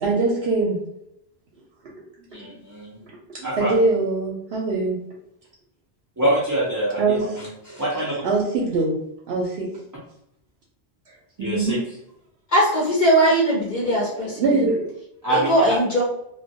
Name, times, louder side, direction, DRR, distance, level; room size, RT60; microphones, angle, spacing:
voice 1, 0.0-0.8 1.8-1.9 2.4-2.5 3.3-5.0 7.0-7.2 8.2-9.0 9.3-9.7 11.4-11.8 13.8-14.9, right 3 dB, 75° right, -3 dB, 0.8 m, -23 dB
voice 2, 2.3-3.1 3.4-3.7 6.2-8.2 11.4-11.8 15.2-15.7, right 1 dB, 30° right, -7 dB, 0.4 m, -25 dB
voice 3, 12.5-14.4 15.5-16.0, right 1 dB, 50° left, -5 dB, 0.6 m, -19 dB
2.2 x 2.1 x 2.6 m, 0.80 s
omnidirectional pair, 1.1 m